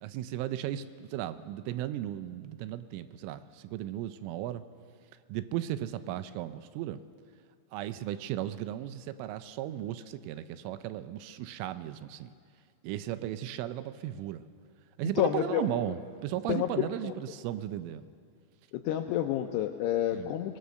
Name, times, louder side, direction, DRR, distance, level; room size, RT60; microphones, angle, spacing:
voice 1, 0.0-4.6 5.3-7.0 7.7-12.3 12.8-14.5 15.0-18.0 20.1-20.3, right 12 dB, 85° right, 12 dB, 3.3 m, -36 dB
voice 2, 15.2-15.7 16.5-17.1 18.8-20.6, left 11 dB, 85° left, 5 dB, 2.4 m, -29 dB
23.5 x 19.5 x 6.5 m, 2.2 s
omnidirectional pair, 5.6 m